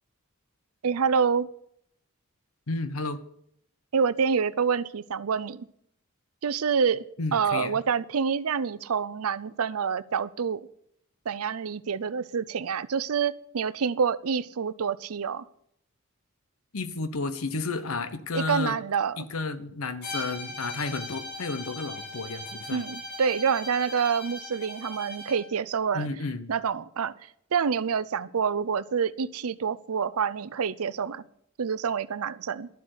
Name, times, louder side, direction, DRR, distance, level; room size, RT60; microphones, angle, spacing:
voice 1, 0.8-1.5 3.9-5.7 6.4-7.0 7.3-10.6 11.3-15.5 18.3-19.2 22.7-26.1 26.5-27.2 27.5-31.2 31.6-32.7, right 6 dB, 80° right, 17 dB, 0.6 m, -27 dB
voice 2, 2.7-3.2 7.2-7.8 16.7-18.8 19.2-22.8 25.9-26.5, left 3 dB, 75° left, 12 dB, 1.0 m, -32 dB
Bowed string instrument, 20.0-25.5, left 1 dB, 50° left, 5.6 m, -39 dB
11.5 x 7.7 x 8.0 m, 0.69 s
head